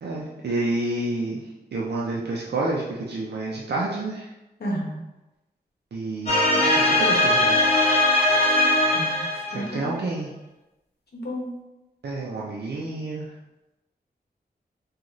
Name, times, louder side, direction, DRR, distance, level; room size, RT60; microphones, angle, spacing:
voice 1, 0.0-1.4 1.7-4.3 5.9-7.6 9.5-10.3 12.0-13.3, right 2 dB, 90° right, -4 dB, 0.5 m, -29 dB
voice 2, 4.6-5.0 8.9-9.9 11.1-11.5, equal, 75° left, -2 dB, 0.9 m, -32 dB
sound 1, 6.3-9.8, left 1 dB, 40° left, 0.7 m, -20 dB
3.0 x 2.4 x 3.8 m, 0.99 s
wide cardioid pair, 105°, 17 cm